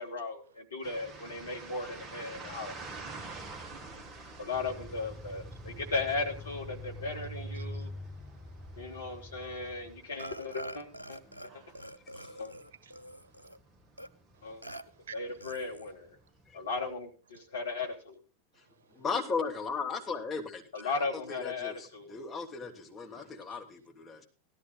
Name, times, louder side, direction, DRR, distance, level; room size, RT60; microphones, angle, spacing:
voice 1, 0.0-2.7 4.4-7.9 8.7-11.2 11.5-11.6 12.4-12.5 14.4-14.6 15.1-16.2 16.5-18.2 20.7-22.2, left 3 dB, 70° left, 3.0 m, -36 dB
sound 1, 0.8-17.0, right 3 dB, 20° right, 1.6 m, -50 dB
voice 2, 2.2-2.6 7.5-9.0 11.6-12.0 12.5-13.6 14.3-15.2 18.5-19.0, right 7 dB, 65° right, 1.5 m, -57 dB
sound 2, 4.5-10.1, equal, ahead, 1.2 m, -44 dB
Burping eructation, 10.2-11.5 11.8-13.6 14.0-14.1 14.6-14.8 15.4-15.9, right 1 dB, 85° right, 0.7 m, -45 dB
voice 3, 18.9-20.9 21.3-24.2, left 5 dB, 20° left, 2.7 m, -36 dB
17.0 x 13.5 x 2.5 m
figure-of-eight pair, 90°, 0 cm